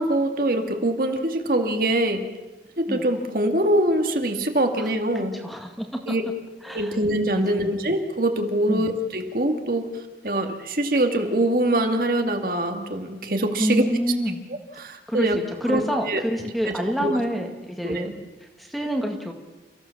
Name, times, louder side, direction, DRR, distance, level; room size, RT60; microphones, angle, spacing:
voice 1, 0.0-2.2 2.8-5.3 6.1-6.2 6.7-9.9 10.2-13.8 14.8-15.4 15.7-15.8 16.1-16.2 16.7-17.2 17.8-18.1, right 1 dB, 50° right, 4 dB, 2.3 m, -23 dB
voice 2, 4.8-5.9 6.6-7.0 7.3-7.8 8.7-8.9 13.6-14.4 15.1-15.3 15.6-18.1 18.6-19.3, equal, ahead, 3 dB, 2.1 m, -27 dB
29.0 x 15.5 x 7.2 m, 1.2 s
head